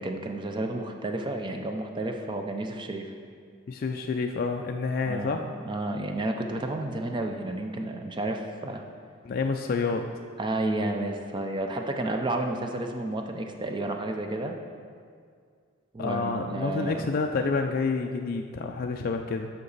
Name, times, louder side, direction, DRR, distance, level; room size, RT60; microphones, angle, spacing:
voice 1, 0.0-3.1 5.1-8.8 10.4-14.5 15.9-17.1, right 2 dB, 25° right, 4 dB, 0.4 m, -31 dB
voice 2, 3.7-5.5 9.2-10.1 16.0-19.5, left 4 dB, 45° left, 3 dB, 0.3 m, -28 dB
8.3 x 5.9 x 4.0 m, 2.1 s
head